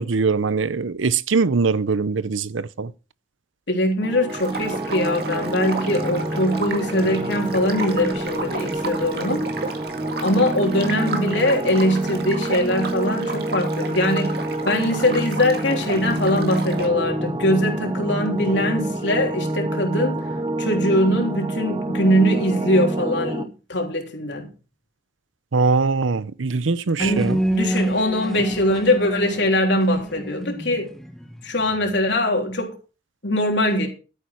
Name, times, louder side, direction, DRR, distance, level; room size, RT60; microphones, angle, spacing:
voice 1, 0.0-2.9 25.5-27.4, right 4 dB, 90° right, 0.7 m, -22 dB
voice 2, 3.7-9.5 10.2-20.3 20.6-24.5 27.0-30.9 31.4-32.7 33.2-33.9, left 1 dB, 70° left, 3.4 m, -22 dB
sound 1, 4.0-23.4, right 1 dB, 20° right, 0.9 m, -28 dB
sound 2, 4.3-16.9, right 3 dB, 55° right, 2.1 m, -33 dB
sound 3, 27.0-31.9, equal, ahead, 1.1 m, -27 dB
12.5 x 9.6 x 4.5 m
head